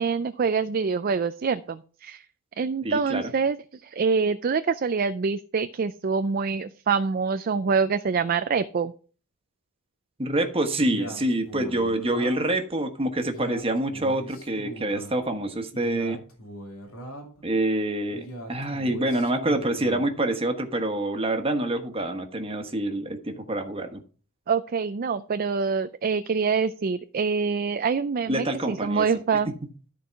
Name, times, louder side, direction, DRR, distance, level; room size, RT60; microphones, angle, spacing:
voice 1, 0.0-2.2 2.6-8.9 24.5-29.5, right 5 dB, 40° right, 11 dB, 0.4 m, -25 dB
voice 2, 2.8-3.3 10.2-16.2 17.4-24.0 28.3-29.0 29.5-29.6, right 1 dB, 25° right, 6 dB, 1.3 m, -26 dB
Male speech man speaking, 10.8-12.6 13.2-15.2 15.7-17.4 18.1-20.1, right 1 dB, 75° left, 2.8 m, -40 dB
13.5 x 4.6 x 4.6 m, 0.39 s
head